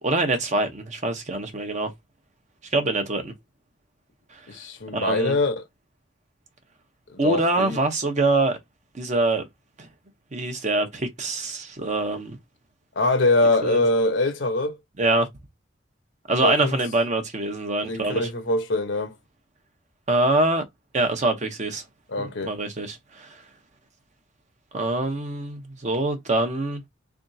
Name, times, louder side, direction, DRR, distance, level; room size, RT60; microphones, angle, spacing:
voice 1, 0.0-1.9 2.7-3.3 4.3-4.4 4.9-5.4 7.2-8.6 8.9-9.4 9.8-9.9 10.3-12.4 13.6-13.8 15.0-15.3 16.3-18.3 20.1-20.6 20.9-21.8 22.2-23.4 24.7-26.8, right 2 dB, 40° right, 0.9 m, -24 dB
voice 2, 4.5-5.6 7.1-7.8 13.0-14.8 16.4-16.8 17.9-19.1 22.1-22.5, left 2 dB, 70° left, 1.0 m, -23 dB
3.6 x 3.5 x 2.7 m
head